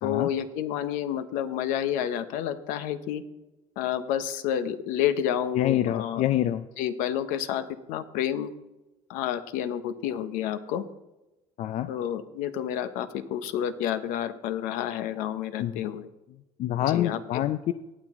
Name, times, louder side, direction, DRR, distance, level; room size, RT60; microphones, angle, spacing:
voice 1, 0.0-3.2 3.8-6.2 6.8-8.5 9.1-10.8 11.9-16.1 16.9-17.4, left 10 dB, 75° left, 12 dB, 0.8 m, -29 dB
voice 2, 5.5-6.6 11.6-11.9 15.6-15.9 16.6-17.7, left 12 dB, 55° left, 12 dB, 0.4 m, -26 dB
17.5 x 6.1 x 3.6 m, 1.0 s
supercardioid pair, 100°, 14 cm